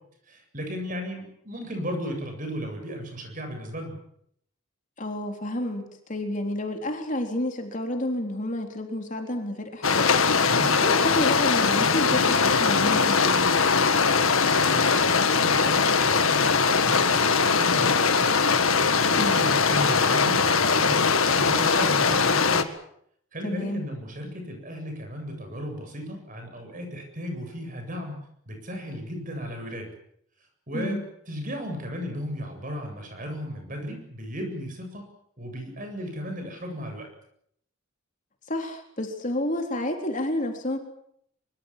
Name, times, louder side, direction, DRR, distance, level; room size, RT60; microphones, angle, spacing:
voice 1, 0.3-4.0 10.4-10.8 14.7-18.4 18.7-22.7 23.3-28.2 28.5-29.9 30.7-31.0 31.3-35.1 35.4-37.1, equal, 40° right, 4 dB, 7.9 m, -35 dB
voice 2, 5.0-5.8 6.1-10.1 10.8-13.8 19.2-19.4 23.4-23.8 30.7-31.0 38.5-40.8, left 1 dB, 35° left, 3 dB, 3.8 m, -30 dB
sound 1, 9.8-22.6, left 5 dB, 80° left, 1.9 m, -21 dB
24.5 x 24.0 x 7.5 m, 0.70 s
head